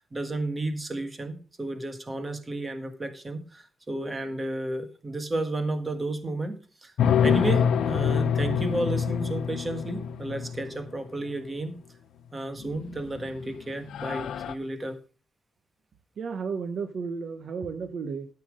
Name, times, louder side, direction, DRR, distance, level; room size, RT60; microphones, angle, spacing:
voice 1, 0.0-6.9 7.2-11.8 12.3-15.0, right 2 dB, 20° right, 7 dB, 1.5 m, -32 dB
sound 1, 7.0-10.9 12.7-13.2 13.5-13.6 13.9-14.5, left 8 dB, 85° left, 0.8 m, -26 dB
voice 2, 16.2-18.3, right 5 dB, 55° right, 9 dB, 0.7 m, -33 dB
12.5 x 5.9 x 5.0 m, 0.37 s
wide cardioid pair, 160°, 0 cm